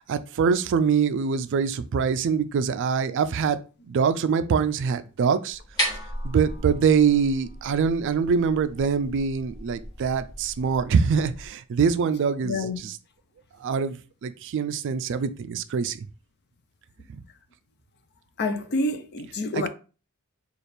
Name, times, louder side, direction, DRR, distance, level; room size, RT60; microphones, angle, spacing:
voice 1, 0.0-3.6 3.9-5.6 6.2-12.9 13.6-16.1 19.5-19.7, right 6 dB, 55° right, 0.3 m, -24 dB
sound 1, 5.5-11.5, equal, 20° left, 1.5 m, -35 dB
voice 2, 12.4-12.8 18.4-19.7, left 2 dB, 50° left, 0.5 m, -28 dB
3.3 x 2.4 x 4.2 m
head